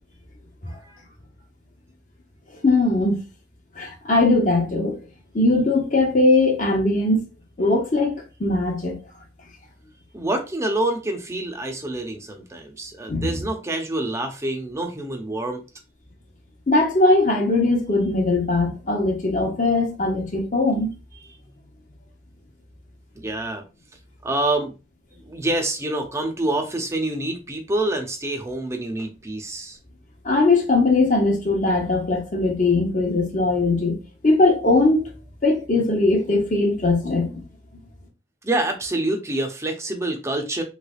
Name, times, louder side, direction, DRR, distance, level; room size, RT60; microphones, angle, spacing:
voice 1, 0.7-1.0 10.1-15.6 23.1-23.6 24.2-24.7 25.1-29.8 38.4-40.6, right 2 dB, 15° right, 0.6 m, -27 dB
voice 2, 2.6-3.2 3.8-4.9 5.3-7.2 7.6-9.0 13.1-13.3 16.7-20.9 30.2-34.0 34.2-35.1 35.4-37.4, left 2 dB, 45° left, 0.9 m, -20 dB
3.3 x 3.2 x 2.3 m
head